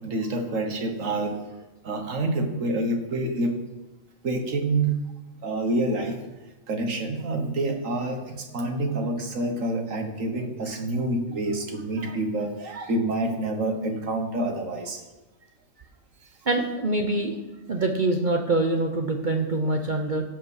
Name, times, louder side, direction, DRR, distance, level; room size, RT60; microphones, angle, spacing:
voice 1, 0.0-1.4 1.8-3.6 4.2-4.9 5.4-6.2 6.7-15.0, right 2 dB, 65° right, 4 dB, 1.7 m, -27 dB
voice 2, 16.5-17.3 17.7-20.2, right 2 dB, 40° right, 3 dB, 0.9 m, -24 dB
16.5 x 5.6 x 5.7 m, 1.1 s
omnidirectional pair, 1.5 m